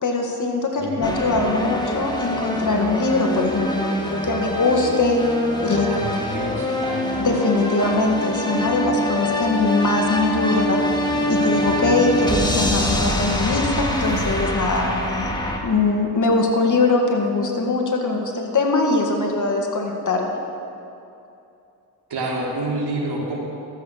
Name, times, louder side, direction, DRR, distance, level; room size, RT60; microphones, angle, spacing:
voice 1, 0.0-5.2 5.6-5.9 7.2-10.8 11.3-15.3 15.6-20.3, left 3 dB, 45° left, 1 dB, 2.0 m, -21 dB
sound 1, 1.0-15.6, left 1 dB, 10° left, 1.8 m, -24 dB
voice 2, 5.7-7.1 22.1-23.4, right 2 dB, 65° right, -2 dB, 2.7 m, -28 dB
13.0 x 8.1 x 6.6 m, 2.7 s
cardioid pair, 65°, 43 cm